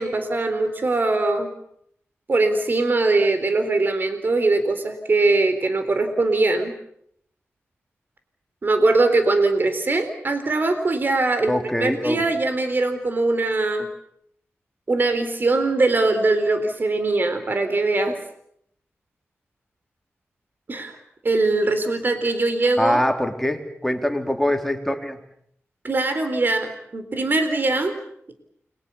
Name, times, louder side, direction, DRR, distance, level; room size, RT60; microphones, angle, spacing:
voice 1, 0.0-1.5 2.3-6.7 8.6-11.5 11.8-13.9 14.9-18.2 20.7-21.0 21.2-23.0 25.8-27.9, right 2 dB, 45° right, 8 dB, 3.8 m, -21 dB
voice 2, 11.5-12.2 22.8-25.2, left 1 dB, 5° left, 4 dB, 3.6 m, -23 dB
29.5 x 23.0 x 7.1 m, 0.72 s
wide cardioid pair, 80°, 5 cm